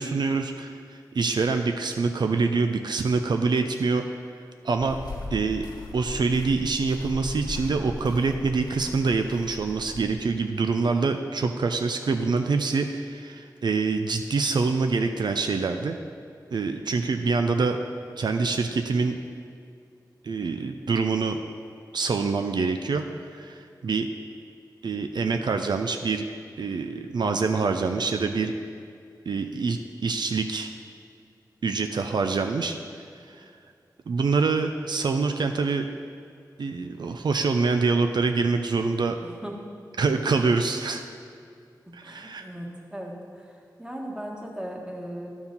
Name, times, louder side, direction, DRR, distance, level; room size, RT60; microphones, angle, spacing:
voice 1, 0.0-4.0 4.6-5.0 5.3-5.7 5.9-16.0 16.5-17.8 18.2-19.2 20.2-21.4 21.9-23.0 23.3-24.1 24.8-26.3 26.6-28.5 29.3-30.7 31.6-32.7 33.4-33.5 34.1-35.9 36.6-39.2 40.0-41.0 41.9-42.5, right 4 dB, 75° right, 6 dB, 0.4 m, -25 dB
sound 1, 4.8-10.4, left 2 dB, 70° left, 1.3 m, -39 dB
voice 2, 39.2-39.5 41.9-43.5 43.8-45.3, right 1 dB, 10° right, -1 dB, 1.4 m, -37 dB
11.0 x 4.7 x 5.3 m, 2.3 s
wide cardioid pair, 55°, 8 cm